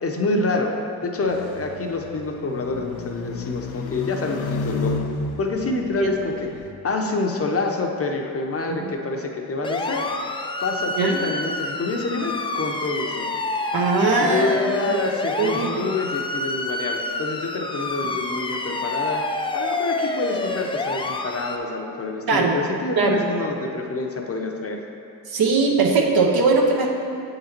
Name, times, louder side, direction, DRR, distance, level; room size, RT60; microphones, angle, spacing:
voice 1, 0.0-0.7 1.0-4.9 5.4-6.5 6.8-10.1 10.6-13.3 14.2-19.2 19.5-24.8, left 3 dB, 35° left, 2 dB, 0.7 m, -27 dB
sound 1, 1.2-6.7, left 3 dB, 70° left, 0.6 m, -31 dB
sound 2, 9.6-21.6, left 2 dB, 15° left, 0.4 m, -28 dB
voice 2, 13.7-14.5 15.4-15.9 22.3-22.6 23.0-23.2 25.3-26.9, right 4 dB, 70° right, 0 dB, 1.0 m, -20 dB
7.7 x 3.9 x 4.3 m, 2.6 s
cardioid pair, 80°, 39 cm